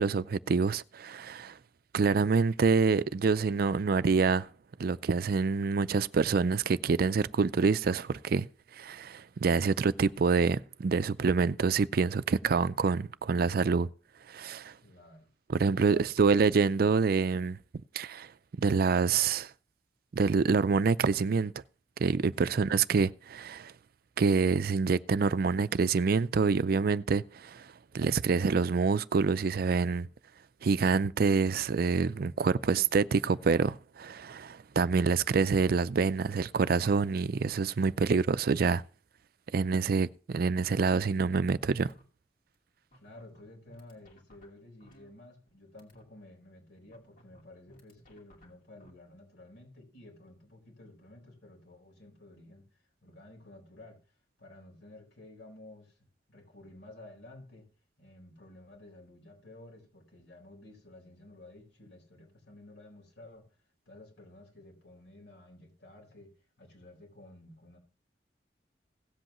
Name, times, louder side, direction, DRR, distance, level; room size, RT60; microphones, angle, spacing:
voice 1, 0.0-1.6 1.9-4.5 4.8-8.5 8.7-13.9 14.3-14.7 15.5-17.6 17.9-18.3 18.6-19.5 20.1-21.5 22.0-23.7 24.2-27.7 27.9-30.1 30.6-38.8 39.5-41.9, right 5 dB, 55° right, 0.4 m, -26 dB
voice 2, 14.8-15.3 15.8-16.3 22.5-22.6 32.6-32.9 42.9-52.7 53.0-54.0 54.4-56.0 56.3-57.7 58.0-63.5 63.9-67.8, left 1 dB, 70° left, 4.3 m, -53 dB
sound 1, 40.9-41.5 41.8-42.0 42.5-42.6 42.9-45.5 45.8-46.0 46.9-48.9, equal, 50° left, 2.6 m, -59 dB
17.0 x 7.8 x 3.0 m
head